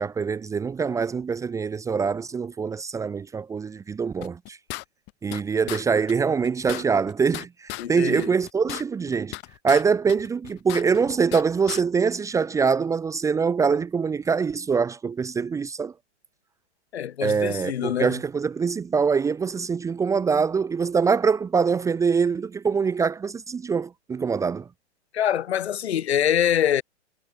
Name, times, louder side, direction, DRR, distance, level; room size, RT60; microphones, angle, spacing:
voice 1, 0.0-4.6 5.2-9.3 9.6-15.9 17.2-24.7, right 5 dB, 10° right, 1.1 m, -24 dB
sound 1, 4.2-5.4 5.7-5.8 6.1-6.2 6.4-7.9 8.2-9.8 10.1-11.4 11.7-11.8, left 24 dB, 30° left, 3.7 m, -35 dB
voice 2, 7.8-8.3 16.9-18.2 25.1-26.8, left 10 dB, 65° left, 2.5 m, -24 dB
hypercardioid pair, 135°, 35 cm